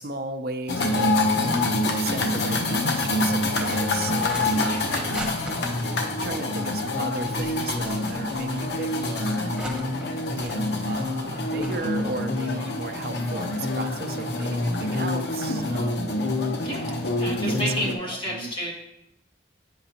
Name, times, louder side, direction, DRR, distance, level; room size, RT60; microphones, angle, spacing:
voice 1, 0.0-1.6 1.9-4.6 6.2-9.5 10.4-16.1 17.2-18.5, right 3 dB, 55° right, 6 dB, 0.5 m, -35 dB
sound 1, 0.7-17.9, left 2 dB, 70° left, 0.8 m, -26 dB
sound 2, 2.2-10.0 10.3-11.3 11.6-12.1, right 1 dB, 5° right, 1.0 m, -41 dB
voice 2, 4.7-5.3 16.6-18.7, equal, 30° left, -4 dB, 1.8 m, -32 dB
9.0 x 5.8 x 2.9 m, 0.82 s
head